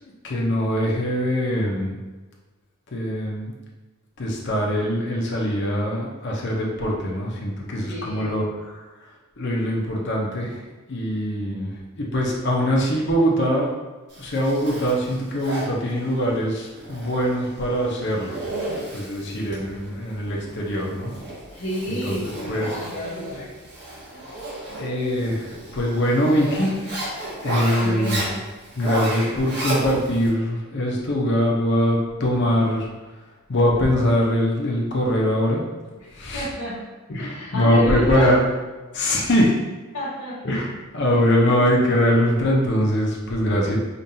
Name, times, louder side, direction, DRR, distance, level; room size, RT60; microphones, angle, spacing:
voice 1, 0.2-1.9 2.9-3.5 4.2-8.8 9.4-10.6 10.9-11.7 12.0-13.7 14.2-18.4 18.9-21.1 21.9-22.2 22.5-22.9 24.8-26.8 27.4-28.2 28.8-32.9 33.5-35.6 36.1-36.5 37.1-38.4 38.9-39.6 40.4-43.8, equal, 55° left, -2 dB, 0.7 m, -22 dB
voice 2, 7.9-8.3 21.5-23.5 27.8-28.3 36.0-36.8 37.2-38.3 39.9-40.4, equal, 70° left, -10 dB, 1.3 m, -30 dB
Zipper (clothing), 14.1-30.3, right 1 dB, 50° right, 1.4 m, -33 dB
5.2 x 2.5 x 2.7 m, 1.2 s
head